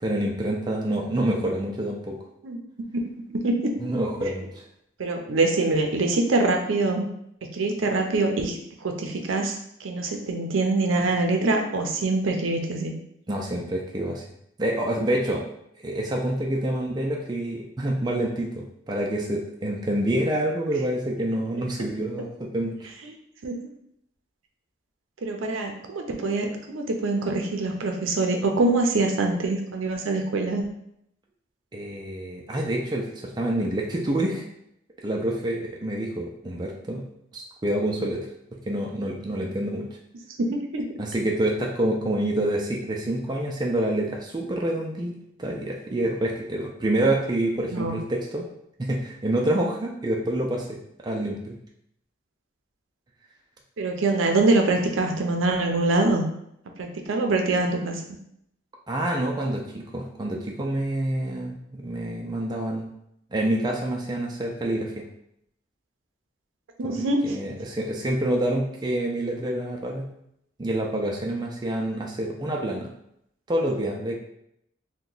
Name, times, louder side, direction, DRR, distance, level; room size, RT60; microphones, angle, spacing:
voice 1, 0.0-2.2 3.8-4.6 13.3-14.3 14.6-15.4 15.8-22.9 31.7-34.5 35.0-37.1 37.3-38.3 38.7-39.9 41.0-45.1 45.4-48.5 48.8-51.6 58.9-62.9 63.3-65.0 66.8-67.0 67.2-70.1 70.6-72.9 73.5-74.2, right 1 dB, 20° right, -1 dB, 0.3 m, -27 dB
voice 2, 3.3-3.7 5.0-7.0 7.5-9.5 9.8-12.9 23.4-23.5 25.2-30.7 40.7-40.8 47.7-48.0 53.8-56.2 56.8-58.0 66.8-67.4, right 2 dB, 80° right, 3 dB, 0.5 m, -24 dB
2.8 x 2.2 x 3.8 m, 0.75 s
head